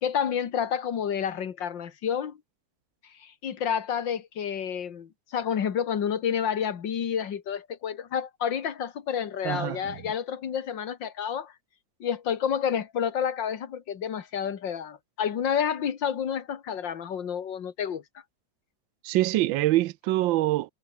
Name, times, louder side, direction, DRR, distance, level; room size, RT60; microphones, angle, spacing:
voice 1, 0.0-2.4 3.2-11.5 12.0-18.0, left 8 dB, 70° left, 2.3 m, -29 dB
voice 2, 9.4-10.0 19.0-20.7, right 16 dB, 80° right, 1.4 m, -25 dB
omnidirectional pair, 2.1 m